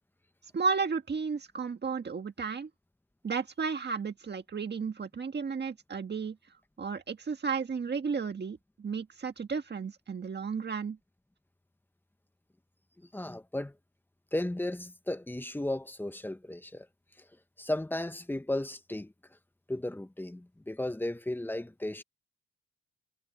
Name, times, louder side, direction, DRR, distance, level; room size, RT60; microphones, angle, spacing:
voice 1, 0.5-2.7 3.2-6.4 6.8-11.0, right 5 dB, 35° right, 1.6 m, -33 dB
voice 2, 13.0-13.7 14.3-16.9 17.2-17.3 17.6-19.1 19.7-22.0, left 1 dB, 5° left, 1.1 m, -35 dB
cardioid pair, 90°, 30 cm